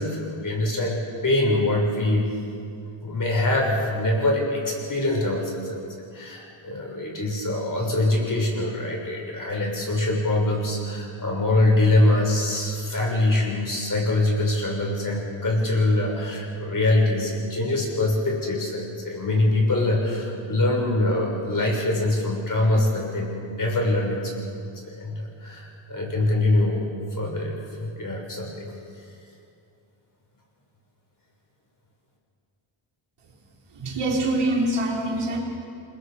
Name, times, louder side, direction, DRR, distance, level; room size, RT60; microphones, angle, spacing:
voice 1, 0.0-2.4 3.0-5.8 6.1-24.6 24.8-26.9 27.2-28.7, left 2 dB, 40° left, -1 dB, 6.8 m, -24 dB
voice 2, 33.7-35.4, right 1 dB, 80° right, -1 dB, 4.0 m, -24 dB
28.5 x 21.0 x 5.3 m, 2.5 s
cardioid pair, 80°, 50 cm